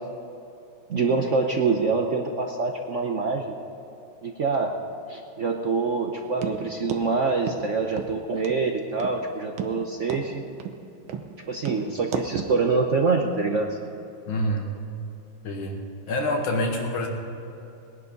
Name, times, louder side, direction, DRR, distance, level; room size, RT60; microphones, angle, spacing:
voice 1, 0.9-3.5 4.2-4.7 5.1-10.4 11.5-13.7, right 4 dB, 55° right, 2 dB, 0.9 m, -25 dB
sound 1, 6.4-6.6 6.9-7.0 7.5-7.6 8.0-8.1 8.4-8.6 9.0-9.2 9.6-9.7 10.1-10.3 10.6-10.8 11.1-11.3 11.7-11.8 12.1-12.5, right 7 dB, 80° right, 1.8 m, -31 dB
voice 2, 14.3-14.7 15.4-17.1, left 1 dB, 80° left, 1 dB, 2.6 m, -26 dB
19.5 x 11.0 x 5.4 m, 3.0 s
omnidirectional pair, 2.2 m